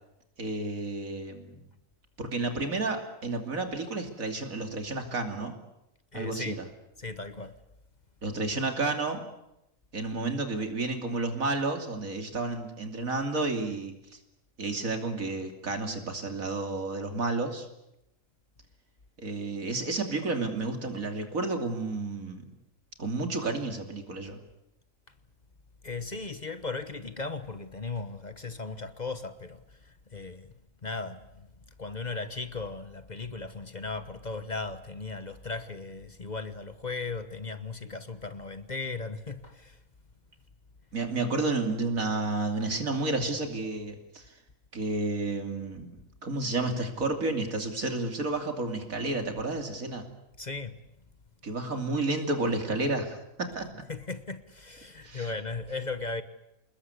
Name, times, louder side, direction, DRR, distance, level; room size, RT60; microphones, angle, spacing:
voice 1, 0.4-1.6 2.2-5.6 6.1-6.6 8.2-9.2 9.9-14.2 14.6-17.7 19.2-22.5 23.0-24.4 40.9-44.3 44.7-50.0 51.4-53.8 55.0-55.3, right 3 dB, 85° right, 3.3 m, -31 dB
voice 2, 6.1-6.6 7.0-7.6 25.8-30.5 30.8-31.5 31.8-39.8 50.4-50.8 53.9-56.2, left 3 dB, 35° left, 1.2 m, -37 dB
27.5 x 20.5 x 8.3 m
omnidirectional pair, 1.4 m